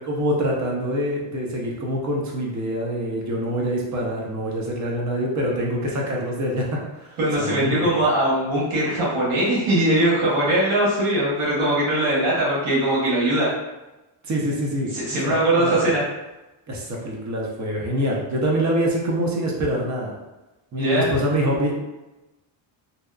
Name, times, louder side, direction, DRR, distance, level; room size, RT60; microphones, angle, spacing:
voice 1, 0.1-7.9 14.2-14.9 15.2-15.7 16.7-20.2 20.7-21.7, equal, 35° right, -2 dB, 0.6 m, -25 dB
voice 2, 7.2-13.5 14.9-16.0 20.8-21.1, right 1 dB, 75° right, -6 dB, 1.3 m, -21 dB
2.7 x 2.3 x 2.3 m, 1.0 s
cardioid pair, 120°, 49 cm